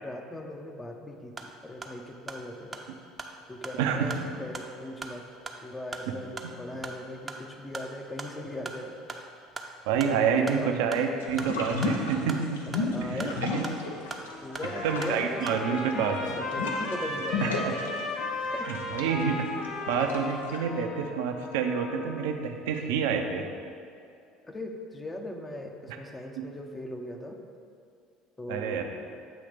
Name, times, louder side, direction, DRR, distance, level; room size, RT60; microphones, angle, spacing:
voice 1, 0.0-2.9 3.5-5.2 5.6-9.2 10.2-10.9 12.7-13.4 14.4-16.1 16.4-17.7 18.5-18.7 24.4-27.4 28.4-28.8, left 1 dB, 20° left, 3 dB, 0.6 m, -39 dB
sound 1, 1.2-15.6, right 3 dB, 25° right, 0.6 m, -43 dB
voice 2, 3.8-4.3 6.4-6.5 9.9-12.6 13.0-13.6 14.8-16.2 17.4-17.5 18.7-23.4 26.4-26.5 28.5-28.8, right 6 dB, 70° right, 4 dB, 0.5 m, -28 dB
sound 2, 11.2-14.3 14.6-20.6, left 3 dB, 85° left, 0.6 m, -33 dB
Trumpet, 13.9-22.3, left 2 dB, 50° left, 0.8 m, -36 dB
7.8 x 2.8 x 5.1 m, 2.4 s
hypercardioid pair, 70°, 0 cm